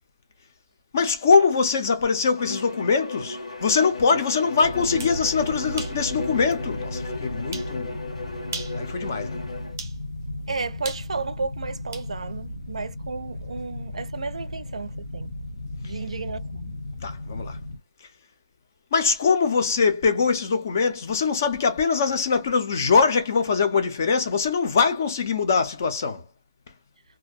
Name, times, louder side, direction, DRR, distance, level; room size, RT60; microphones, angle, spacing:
voice 1, 0.9-8.0 8.7-9.4 17.0-17.6 18.0-18.1 18.9-26.3, left 5 dB, 25° left, 0.4 m, -22 dB
Bowed string instrument, 2.4-9.8, left 2 dB, 90° left, 1.1 m, -35 dB
sound 1, 4.6-17.8, left 1 dB, 55° left, 0.7 m, -35 dB
sound 2, 4.8-5.2 5.8-6.0 6.5-6.6 7.5-7.7 8.4-8.8 9.8-10.0 10.8-12.1, right 4 dB, 25° right, 0.5 m, -37 dB
voice 2, 10.5-15.4 15.8-16.8, right 4 dB, 75° right, 0.4 m, -33 dB
2.4 x 2.1 x 2.4 m
hypercardioid pair, 180°, 3 cm